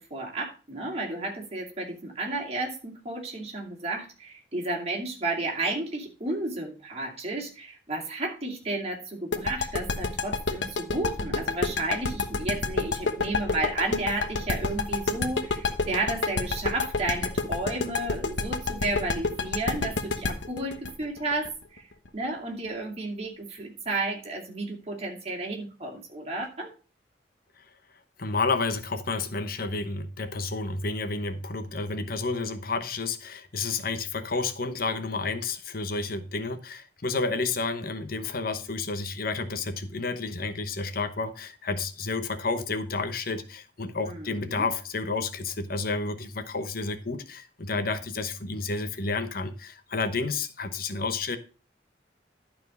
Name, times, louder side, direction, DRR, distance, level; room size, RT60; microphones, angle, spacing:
voice 1, 0.0-21.9 22.1-26.7 44.0-44.7, right 2 dB, 35° right, 2.5 m, -32 dB
sound 1, 9.3-22.1, left 4 dB, 80° left, 1.1 m, -28 dB
voice 2, 28.2-51.4, left 3 dB, 55° left, 0.9 m, -30 dB
11.5 x 4.4 x 5.3 m
head